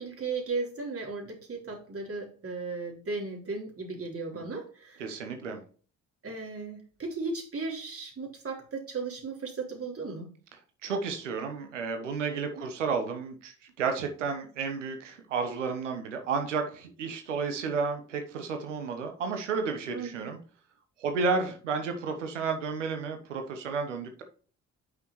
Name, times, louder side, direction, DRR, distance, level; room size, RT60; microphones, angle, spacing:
voice 1, 0.0-5.2 6.2-10.3 12.6-12.7 19.9-20.3, right 4 dB, 40° right, 0 dB, 3.8 m, -36 dB
voice 2, 5.0-5.6 10.8-20.4 21.0-24.2, right 5 dB, 85° right, 6 dB, 1.0 m, -32 dB
9.1 x 5.9 x 3.1 m, 0.40 s
hypercardioid pair, 45°, 36 cm